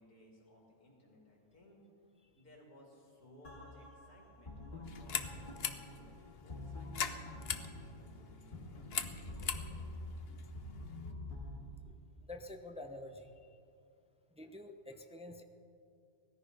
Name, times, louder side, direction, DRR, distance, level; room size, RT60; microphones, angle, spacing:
voice 1, 0.0-1.8 2.3-9.7, left 1 dB, 85° left, -2 dB, 3.6 m, -62 dB
sound 1, 3.4-11.6, left 2 dB, 35° left, 2.4 m, -47 dB
sound 2, 4.8-11.1, left 7 dB, 50° left, 0.9 m, -43 dB
voice 2, 12.3-13.3 14.3-15.4, left 1 dB, 5° right, 5 dB, 0.6 m, -48 dB
18.5 x 14.0 x 5.5 m, 2.4 s
omnidirectional pair, 1.6 m